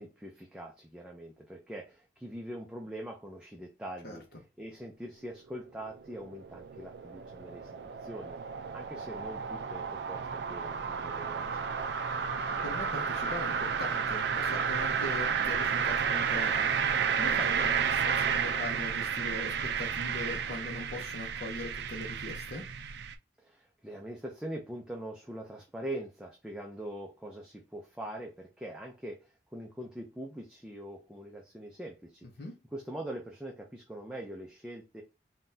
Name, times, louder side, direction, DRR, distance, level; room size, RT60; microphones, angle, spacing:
voice 1, 0.0-4.2 4.6-7.7 8.0-8.4 8.7-11.9 23.4-32.3 32.7-35.0, right 1 dB, 5° right, 0.4 m, -43 dB
sound 1, 5.5-23.1, right 6 dB, 80° right, 0.4 m, -32 dB
voice 2, 12.6-22.7 32.2-32.5, left 2 dB, 60° left, 0.6 m, -41 dB
3.7 x 2.2 x 2.6 m
head